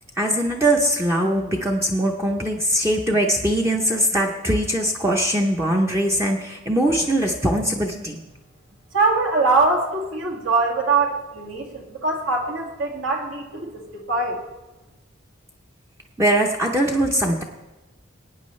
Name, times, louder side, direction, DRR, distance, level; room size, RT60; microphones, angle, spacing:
voice 1, 0.2-8.2 16.2-17.4, right 1 dB, 15° right, 0 dB, 0.7 m, -21 dB
voice 2, 8.9-14.4, right 3 dB, 70° right, -1 dB, 2.1 m, -22 dB
21.0 x 9.4 x 3.2 m, 1.1 s
head